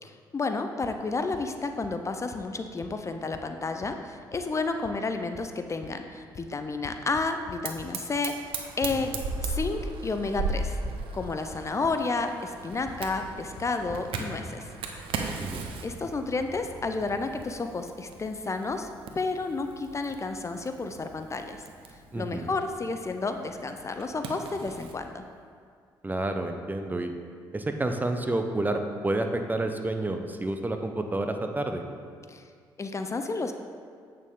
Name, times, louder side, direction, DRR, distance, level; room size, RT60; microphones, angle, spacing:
voice 1, 0.0-9.1 9.4-10.8 11.1-14.7 15.8-18.9 19.2-21.6 22.1-25.2 32.3-32.4 32.8-33.5, left 3 dB, 30° left, 7 dB, 0.6 m, -31 dB
sound 1, 0.8-0.9 1.3-1.4 1.8-1.9 2.3-2.4 2.8-2.9 3.3-3.4 3.8-3.9 4.3-4.4 4.8-4.9 5.3-5.4 5.8-5.9 6.3-6.4 6.8-7.8 8.8-9.9 10.8-10.9 11.2-11.6 11.8-11.9 12.9-13.0 13.2-13.3 13.6-13.7 13.9-14.0, left 5 dB, 45° left, 1.0 m, -44 dB
Fire, 7.6-25.0, right 3 dB, 70° right, 0.8 m, -38 dB
voice 2, 15.2-15.7 22.1-22.5 26.0-27.1 27.5-31.8, right 2 dB, 20° right, 5 dB, 0.8 m, -29 dB
8.1 x 6.7 x 3.7 m, 2.1 s
supercardioid pair, 65°, 9 cm